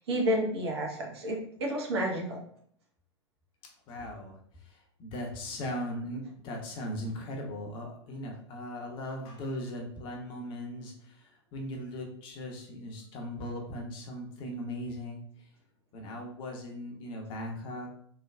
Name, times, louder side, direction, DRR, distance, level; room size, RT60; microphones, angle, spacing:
voice 1, 0.0-2.4, equal, 60° right, 0 dB, 0.8 m, -30 dB
voice 2, 3.9-4.4 4.7-15.2 15.9-17.9, left 1 dB, 35° left, 1 dB, 0.7 m, -38 dB
3.2 x 2.2 x 2.3 m, 0.64 s
figure-of-eight pair, 95°, 15 cm